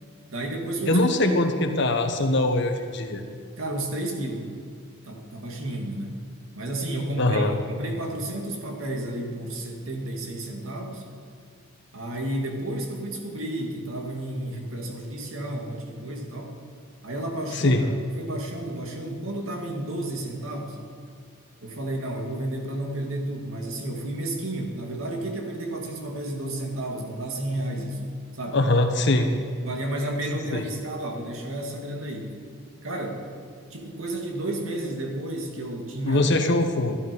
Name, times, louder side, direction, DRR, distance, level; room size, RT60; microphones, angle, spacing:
voice 1, 0.3-1.3 3.6-4.5 5.1-6.2 6.5-11.1 11.9-16.6 17.0-20.8 21.6-28.0 28.3-28.6 29.6-32.3 32.8-33.2 33.7-36.2, right 1 dB, 75° right, 1 dB, 2.2 m, -32 dB
voice 2, 0.9-3.2 7.2-7.6 17.5-17.9 28.5-29.3 30.5-30.6 36.0-37.0, left 2 dB, 55° left, 6 dB, 1.1 m, -22 dB
12.5 x 12.5 x 5.4 m, 2.3 s
head